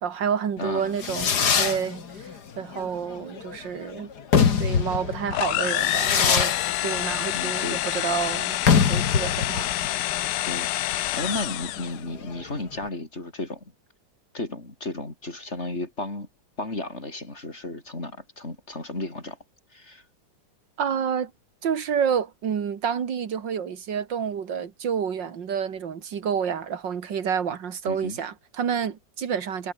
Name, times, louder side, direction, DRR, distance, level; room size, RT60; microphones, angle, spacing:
voice 1, 0.0-2.3 2.6-4.1 4.6-10.2 20.8-21.3 21.6-29.7, right 7 dB, 85° right, 2.4 m, -29 dB
Fireworks, 0.6-12.9, left 6 dB, 65° left, 2.4 m, -25 dB
voice 2, 0.6-0.9 7.3-7.8 10.4-13.7 14.3-16.3 16.6-19.4 19.7-20.0 27.9-28.2, left 2 dB, 35° left, 4.9 m, -34 dB
sound 1, 5.3-12.0, left 15 dB, 80° left, 1.2 m, -27 dB
omnidirectional pair, 1.9 m